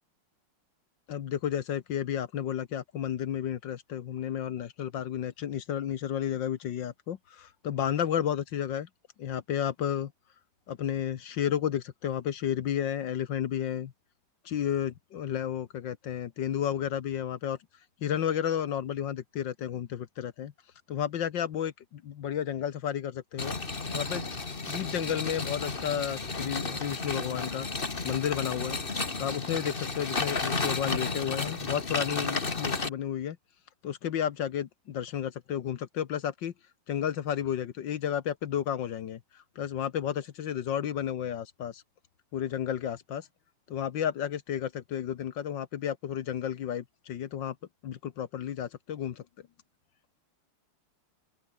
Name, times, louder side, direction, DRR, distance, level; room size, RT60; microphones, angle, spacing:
voice 1, 1.1-8.9 9.2-10.1 10.7-13.9 14.4-17.6 18.0-20.5 20.9-23.5 23.9-24.3 24.7-27.7 28.0-28.8 29.2-33.4 33.8-36.5 36.9-39.2 39.6-41.8 42.3-43.3 43.7-47.5 47.8-49.2, left 9 dB, 60° left, 1.6 m, -32 dB
sound 1, 23.4-32.9, left 3 dB, 25° left, 2.0 m, -32 dB
open air
omnidirectional pair, 2.4 m